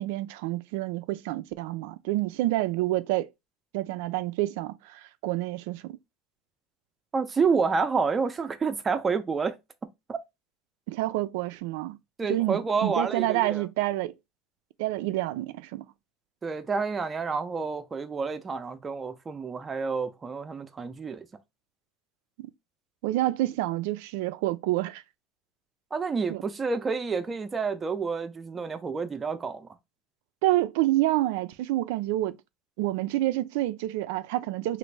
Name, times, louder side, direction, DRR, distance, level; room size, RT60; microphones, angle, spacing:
voice 1, 0.0-3.3 3.7-5.9 10.9-12.0 12.3-14.1 14.8-15.8 22.4-22.5 23.0-25.0 26.3-26.4 30.4-32.4 32.8-34.8, right 16 dB, 80° right, 0.3 m, -28 dB
voice 2, 7.1-9.5 10.1-10.2 12.2-13.7 16.4-21.3 25.9-29.7, right 5 dB, 25° right, 0.5 m, -29 dB
3.0 x 2.5 x 3.2 m
supercardioid pair, 115°, 0 cm